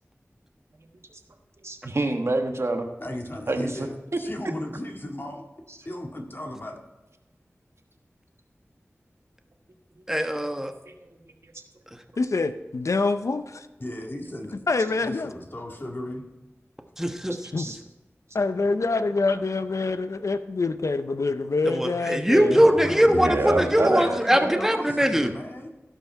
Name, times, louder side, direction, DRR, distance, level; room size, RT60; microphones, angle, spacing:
voice 1, 1.6-2.9 3.5-3.9 10.8-11.2 17.6-17.8 23.1-24.6, right 2 dB, 60° right, 4 dB, 1.3 m, -26 dB
voice 2, 3.0-5.5 5.9-6.8 13.8-14.5 15.0-16.2 22.5-25.7, left 1 dB, 45° left, 1 dB, 1.9 m, -35 dB
voice 3, 10.1-10.7 17.0-17.4 21.7-25.3, equal, 10° right, 5 dB, 1.1 m, -21 dB
voice 4, 12.2-13.7 14.7-15.3 17.5-17.7 18.3-22.6, left 3 dB, 80° left, 11 dB, 0.5 m, -25 dB
16.5 x 5.5 x 4.6 m, 1.0 s
wide cardioid pair, 45°, 5 cm